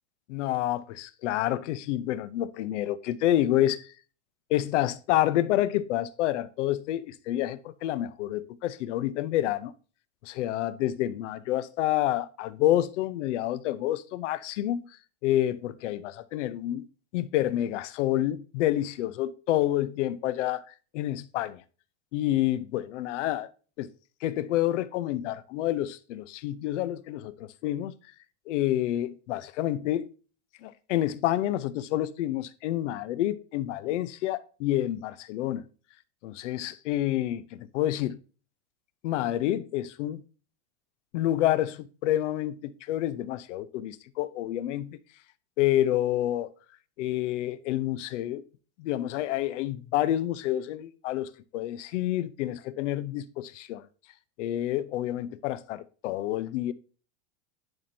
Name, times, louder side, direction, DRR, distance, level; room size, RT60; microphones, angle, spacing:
voice 1, 0.3-3.9 4.5-9.7 10.2-14.8 15.2-16.9 17.1-21.6 22.1-23.5 23.8-23.9 24.2-27.9 28.5-30.1 30.6-35.6 36.2-37.5 37.7-38.2 39.0-40.2 41.1-45.0 45.6-46.5 47.0-48.4 48.8-53.9 54.4-56.7, left 13 dB, 80° left, 0.8 m, -28 dB
10.5 x 4.4 x 2.7 m
supercardioid pair, 150°, 36 cm